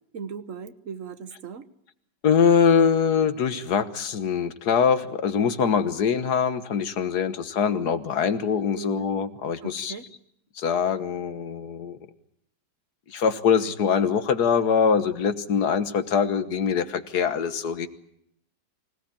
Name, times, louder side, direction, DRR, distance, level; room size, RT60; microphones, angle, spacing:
voice 1, 0.1-1.7 8.7-9.0 9.6-10.1, right 6 dB, 50° right, 12 dB, 1.4 m, -38 dB
voice 2, 2.2-10.0 10.6-12.0 13.1-17.9, left 6 dB, 65° left, 11 dB, 1.8 m, -23 dB
25.5 x 17.5 x 8.8 m, 0.75 s
omnidirectional pair, 1.9 m